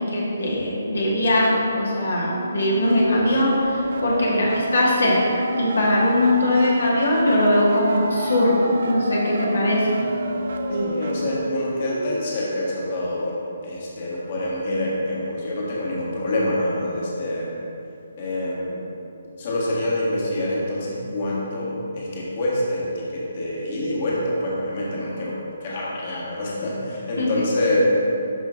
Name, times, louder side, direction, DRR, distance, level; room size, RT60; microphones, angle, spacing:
voice 1, 0.1-9.9 27.2-27.3, left 1 dB, 70° left, -5 dB, 1.5 m, -21 dB
sound 1, 2.2-12.2, right 1 dB, 55° right, 0.5 m, -28 dB
voice 2, 10.7-17.6 18.2-18.9 19.4-25.4 25.6-27.8, left 1 dB, 40° left, -5 dB, 1.5 m, -26 dB
12.0 x 5.2 x 2.6 m, 2.8 s
figure-of-eight pair, 140°, 0 cm